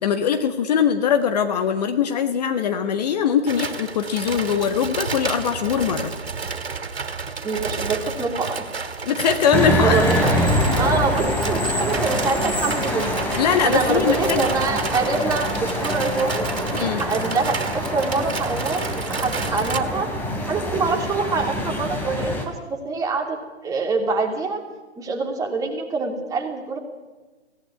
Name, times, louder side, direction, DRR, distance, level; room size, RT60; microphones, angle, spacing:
voice 1, 0.0-6.1 9.0-10.0 13.4-14.5 16.7-17.0, left 7 dB, 35° left, 7 dB, 1.6 m, -21 dB
sound 1, 3.5-19.8, right 4 dB, 60° right, 3.0 m, -31 dB
voice 2, 7.4-8.6 9.8-10.4 10.7-13.3 13.6-20.1 20.5-23.4 23.6-24.6 25.0-26.8, right 4 dB, 10° right, 1 dB, 2.9 m, -25 dB
sound 2, 9.5-22.5, equal, 5° left, 3.2 m, -25 dB
24.5 x 17.5 x 9.6 m, 1.3 s
figure-of-eight pair, 130°, 34 cm